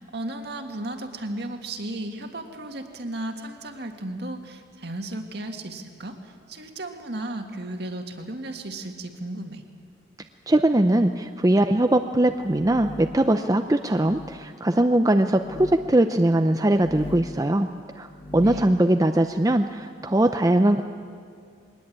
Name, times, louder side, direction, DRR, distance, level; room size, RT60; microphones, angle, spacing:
voice 1, 0.0-9.6 18.4-18.7, right 1 dB, 55° right, 4 dB, 2.0 m, -35 dB
voice 2, 10.5-17.7 18.0-20.8, right 1 dB, 20° right, 7 dB, 0.5 m, -21 dB
sound 1, 12.3-13.3 14.0-14.3 15.3-15.8 16.7-17.4 18.0-18.7, left 1 dB, 30° left, 1.1 m, -39 dB
22.0 x 19.5 x 8.8 m, 2.2 s
head